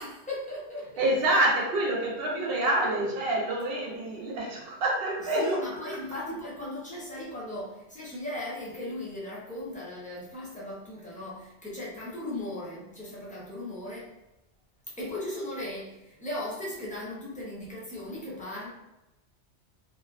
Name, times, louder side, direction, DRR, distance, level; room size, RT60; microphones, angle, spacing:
voice 1, 0.0-1.1 5.2-14.1 15.0-18.7, left 1 dB, 10° left, -7 dB, 0.5 m, -37 dB
voice 2, 1.0-5.6, right 1 dB, 60° right, -2 dB, 0.9 m, -27 dB
2.7 x 2.3 x 2.3 m, 0.96 s
omnidirectional pair, 1.2 m